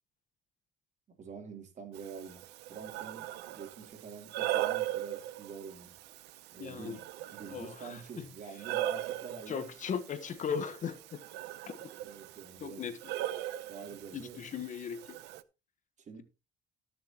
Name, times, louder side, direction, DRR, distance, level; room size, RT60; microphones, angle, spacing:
voice 1, 1.2-2.4 2.7-5.9 6.5-7.0 7.3-9.7 12.0-12.8 13.7-14.4 16.0-16.2, right 5 dB, 45° right, 3.4 m, -46 dB
Breathing, 1.9-15.4, right 13 dB, 85° right, 0.8 m, -39 dB
voice 2, 6.6-7.0 7.5-8.3 9.5-11.2 11.7-11.9 12.6-13.1 14.1-15.2, left 7 dB, 50° left, 1.3 m, -38 dB
20.0 x 6.8 x 3.0 m
cardioid pair, 110°, 17 cm